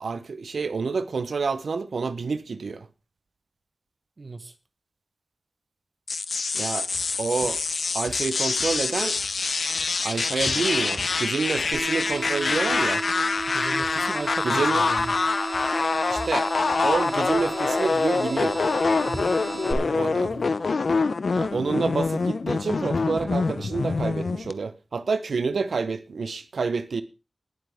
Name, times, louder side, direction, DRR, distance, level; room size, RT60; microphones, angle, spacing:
voice 1, 0.0-2.9 6.5-6.9 7.2-7.6 7.9-9.2 10.0-13.0 14.4-14.9 16.1-16.5 16.8-18.6 19.9-20.3 21.3-27.0, right 4 dB, 85° right, 0.7 m, -28 dB
voice 2, 4.2-4.5 13.5-15.1 19.1-19.4 19.7-20.5, right 3 dB, 50° right, 1.1 m, -37 dB
sound 1, 6.1-24.5, left 4 dB, 70° left, 0.7 m, -25 dB
sound 2, 6.9-23.3, left 1 dB, 25° left, 2.0 m, -45 dB
sound 3, 11.7-19.7, right 2 dB, 25° right, 3.1 m, -33 dB
19.0 x 7.7 x 3.5 m
wide cardioid pair, 85°, 0 cm